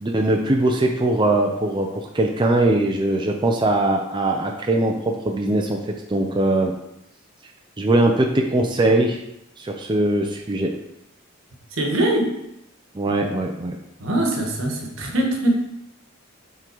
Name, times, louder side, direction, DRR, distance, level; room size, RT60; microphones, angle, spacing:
voice 1, 0.0-4.9 5.2-5.8 6.1-6.7 7.8-9.2 9.6-10.7 12.9-13.8, right 2 dB, 20° right, 1 dB, 0.5 m, -21 dB
voice 2, 11.8-12.3 14.0-15.5, right 1 dB, 70° right, 1 dB, 1.3 m, -22 dB
7.7 x 3.8 x 4.6 m, 0.83 s
head